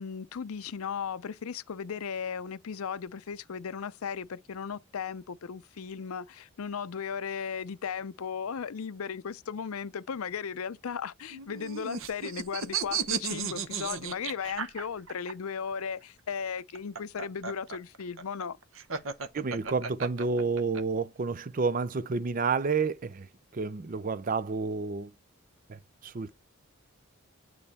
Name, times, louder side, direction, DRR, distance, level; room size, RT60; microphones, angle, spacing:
voice 1, 0.0-18.6, left 6 dB, 80° left, 0.5 m, -36 dB
sound 1, 11.3-15.3 16.6-20.8, right 6 dB, 65° right, 0.8 m, -34 dB
voice 2, 19.3-25.1 25.7-26.3, right 4 dB, 40° right, 0.5 m, -30 dB
8.6 x 3.2 x 4.1 m
head